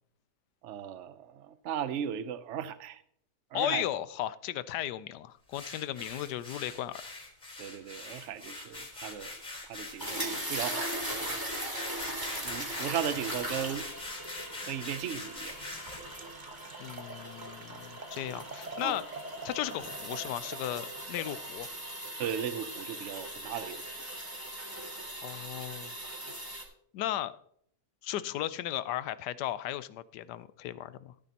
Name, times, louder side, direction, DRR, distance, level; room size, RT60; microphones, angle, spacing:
voice 1, 0.6-3.0 3.5-3.9 7.6-9.3 9.6-10.8 11.1-11.4 12.4-13.9 14.6-15.6 18.8-19.0 22.2-23.8, right 9 dB, 60° right, 0.8 m, -36 dB
voice 2, 3.5-7.0 16.8-19.0 19.4-21.7 25.2-25.9 26.4-26.5 26.9-27.4 28.0-31.1, left 12 dB, 80° left, 1.2 m, -35 dB
sound 1, 5.5-16.2, left 2 dB, 25° left, 3.9 m, -43 dB
sound 2, 10.0-26.6, right 1 dB, 10° right, 2.0 m, -40 dB
Liquid, 15.0-21.8, right 2 dB, 35° right, 0.9 m, -46 dB
15.0 x 9.1 x 2.9 m
omnidirectional pair, 1.8 m